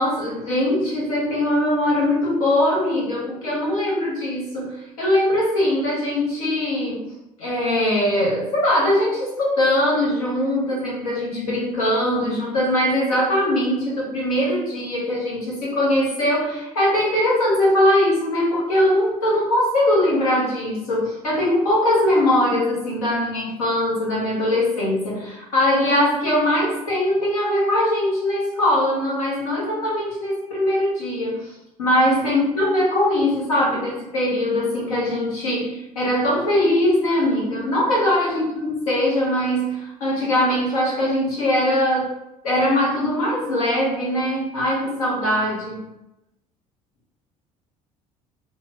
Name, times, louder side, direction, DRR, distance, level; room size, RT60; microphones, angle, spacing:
voice 1, 0.0-7.1 7.4-31.5 31.8-42.2 42.4-45.9, left 1 dB, 80° left, -5 dB, 1.2 m, -21 dB
4.0 x 2.4 x 2.5 m, 0.92 s
hypercardioid pair, 60°, 18 cm